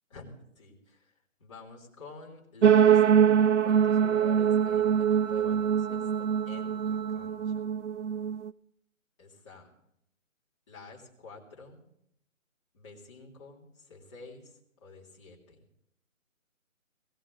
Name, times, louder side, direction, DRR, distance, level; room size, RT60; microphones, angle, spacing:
voice 1, 0.1-1.1 1.4-7.6 9.2-9.7 10.7-11.9 12.7-15.6, left 3 dB, 20° left, -5 dB, 3.1 m, -49 dB
sound 1, 2.6-8.5, right 8 dB, 60° right, 0.5 m, -23 dB
sound 2, 3.7-7.7, right 7 dB, 50° left, 1.2 m, -44 dB
20.5 x 17.5 x 3.9 m, 0.77 s
figure-of-eight pair, 165°, 41 cm